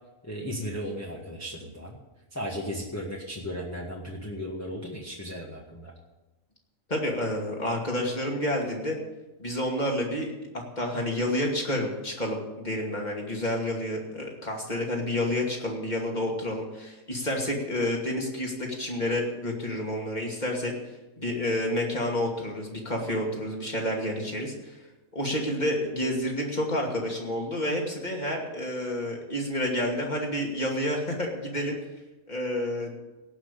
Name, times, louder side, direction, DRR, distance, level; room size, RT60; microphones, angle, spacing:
voice 1, 0.2-2.0 2.3-5.9, equal, 10° left, -3 dB, 1.6 m, -35 dB
voice 2, 6.9-9.0 9.4-20.7 21.2-24.8 25.1-31.8 32.3-32.9, left 1 dB, 30° left, 0 dB, 2.7 m, -29 dB
18.0 x 6.1 x 8.4 m, 1.1 s
omnidirectional pair, 1.4 m